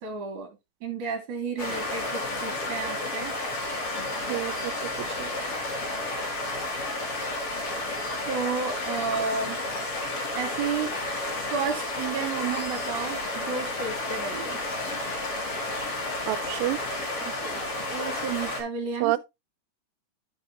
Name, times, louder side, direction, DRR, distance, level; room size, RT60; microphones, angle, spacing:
voice 1, 0.0-0.5 0.8-3.3 8.3-9.6 10.3-10.9 11.5-14.6 17.2-19.1, right 5 dB, 55° right, 2.5 m, -32 dB
sound 1, 1.6-18.6, left 2 dB, 40° left, 2.8 m, -31 dB
voice 2, 4.3-4.7 5.2-5.3 16.3-16.8 19.0-19.2, right 16 dB, 85° right, 2.7 m, -28 dB
10.5 x 5.5 x 3.4 m
omnidirectional pair, 4.8 m